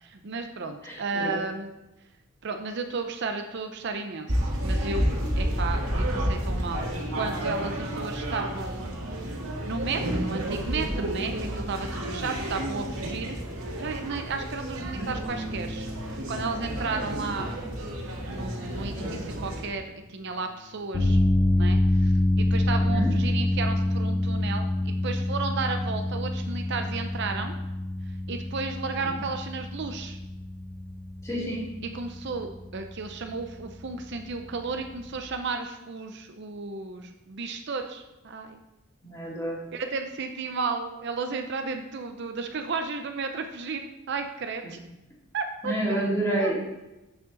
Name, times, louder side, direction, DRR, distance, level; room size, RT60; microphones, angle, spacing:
voice 1, 0.0-1.7 2.4-5.1 5.4-8.9 9.6-13.4 13.8-17.5 18.3-21.2 21.6-27.5 28.3-30.2 31.9-38.6 39.7-44.8 45.3-46.0 46.4-46.5, right 4 dB, 55° right, 6 dB, 0.6 m, -33 dB
voice 2, 0.8-1.4 14.9-15.1 19.0-19.2 22.8-23.1 29.0-29.2 31.2-31.6 39.0-39.6 45.6-46.6, right 1 dB, 15° left, -5 dB, 2.3 m, -29 dB
sound 1, 4.3-19.6, equal, 85° right, 1.8 m, -31 dB
Bass guitar, 15.2-21.5, equal, 30° right, 1.4 m, -44 dB
sound 2, 20.9-35.2, left 1 dB, 65° left, 2.3 m, -27 dB
8.0 x 6.6 x 3.9 m, 0.97 s
head